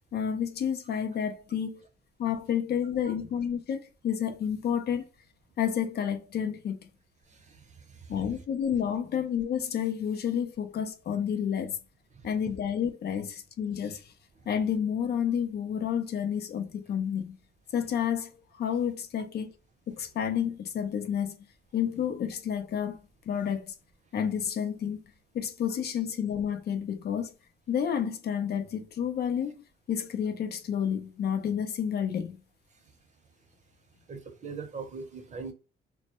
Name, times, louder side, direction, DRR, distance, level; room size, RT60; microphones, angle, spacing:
voice 1, 0.1-1.9 2.2-5.1 5.6-6.9 8.1-11.8 12.2-14.1 14.5-17.4 17.7-19.6 19.9-21.5 21.7-23.0 23.3-23.7 24.1-25.0 25.3-27.3 27.7-32.4, left 8 dB, 55° left, 0.5 m, -30 dB
voice 2, 7.3-8.2 12.1-12.3 14.4-14.5 32.7-32.9 34.1-35.5, right 5 dB, 35° right, 0.7 m, -42 dB
2.1 x 2.1 x 2.8 m
cardioid pair, 90°, 20 cm